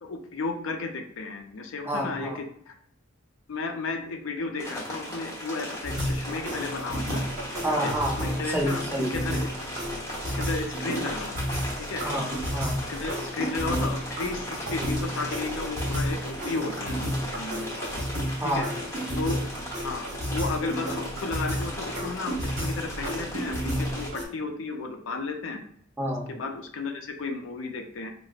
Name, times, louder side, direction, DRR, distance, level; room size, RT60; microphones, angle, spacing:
voice 1, 0.0-2.7 3.5-7.2 7.8-8.8 9.1-9.5 10.3-11.4 11.8-12.0 12.9-17.7 18.4-18.7 19.2-19.4 19.8-20.0 20.3-25.6 26.3-28.1, left 3 dB, 70° left, 5 dB, 0.5 m, -33 dB
voice 2, 1.9-2.4 7.6-9.1 12.0-12.8 18.4-18.7 26.0-26.3, equal, 10° right, -1 dB, 0.6 m, -29 dB
sound 1, 4.6-24.1, equal, 15° left, 1.0 m, -37 dB
sound 2, 5.8-24.3, equal, 35° right, 1.3 m, -32 dB
4.9 x 2.0 x 2.3 m, 0.63 s
head